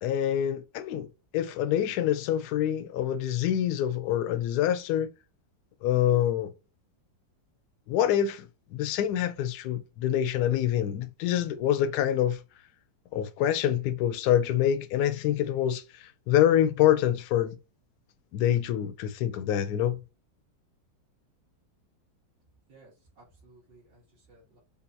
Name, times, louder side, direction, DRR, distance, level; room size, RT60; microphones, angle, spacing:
voice 1, 0.0-1.1 1.3-5.1 5.8-6.5 7.9-12.4 13.1-17.5 18.3-20.0, left 11 dB, 70° left, 1.0 m, -26 dB
voice 2, 22.7-24.6, right 2 dB, 65° right, 2.1 m, -57 dB
5.3 x 2.2 x 2.6 m
omnidirectional pair, 2.1 m